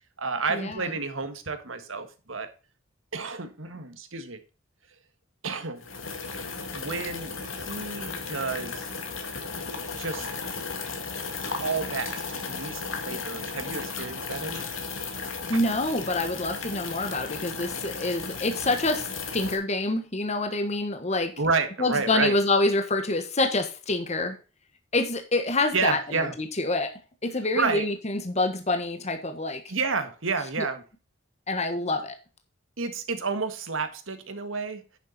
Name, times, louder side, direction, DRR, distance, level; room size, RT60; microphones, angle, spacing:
voice 1, 0.2-2.5 3.1-4.4 5.4-5.8 6.7-8.9 9.9-10.3 11.4-14.7 21.4-22.3 25.7-26.3 27.5-27.9 29.7-30.8 32.8-34.8, right 4 dB, 85° right, 1.7 m, -30 dB
sound 1, 5.8-19.6, left 4 dB, 85° left, 2.2 m, -35 dB
voice 2, 15.5-21.3 21.8-24.4 24.9-26.9 27.2-29.6 31.5-32.1, left 2 dB, 35° left, 1.3 m, -27 dB
10.0 x 6.9 x 4.0 m
head